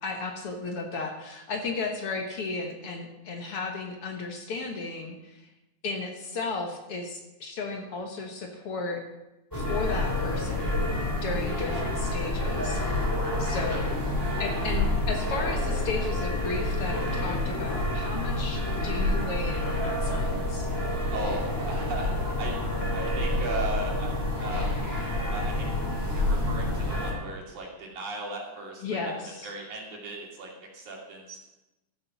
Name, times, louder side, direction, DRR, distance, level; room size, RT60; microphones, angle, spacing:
voice 1, 0.0-5.5 5.8-9.0 9.5-13.0 13.4-13.9 14.4-20.7 28.8-29.5, left 3 dB, 55° left, 3 dB, 1.9 m, -34 dB
sound 1, 9.5-27.1, left 1 dB, 5° left, 3.0 m, -28 dB
voice 2, 13.5-13.8 21.1-22.6 22.9-24.8 25.3-25.7 26.1-29.1 29.4-31.4, right 2 dB, 80° right, -2 dB, 4.1 m, -37 dB
14.0 x 7.6 x 5.9 m, 0.97 s
omnidirectional pair, 3.4 m